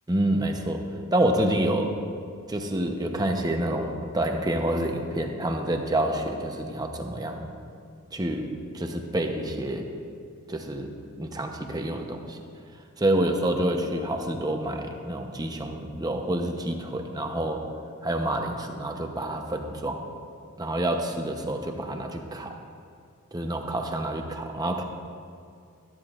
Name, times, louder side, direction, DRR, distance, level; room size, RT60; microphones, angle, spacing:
voice 1, 0.1-0.8 1.1-1.9 2.5-3.9 4.1-7.5 8.1-8.5 8.7-9.8 10.5-10.9 11.2-12.4 13.0-17.6 18.0-20.1 20.6-22.5 23.3-24.8, right 1 dB, 15° right, 3 dB, 0.8 m, -28 dB
16.5 x 12.5 x 2.5 m, 2.3 s
head